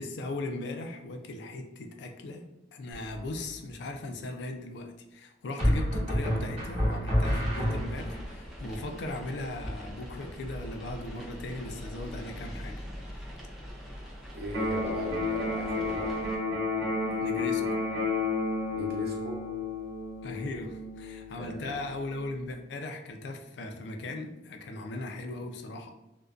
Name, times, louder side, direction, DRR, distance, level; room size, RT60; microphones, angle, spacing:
voice 1, 0.0-13.3 17.2-17.8 20.2-25.9, left 2 dB, 70° left, 4 dB, 0.3 m, -38 dB
sound 1, 2.9-3.4 5.6-8.2, equal, 35° right, 0.9 m, -28 dB
sound 2, 7.4-16.4, equal, ahead, 0.4 m, -43 dB
voice 2, 14.3-16.2 18.7-19.4 21.3-21.8, right 1 dB, 55° right, -2 dB, 0.6 m, -38 dB
Electric guitar, 14.5-22.5, left 3 dB, 90° right, 0.8 m, -32 dB
2.5 x 2.2 x 2.3 m, 0.96 s
head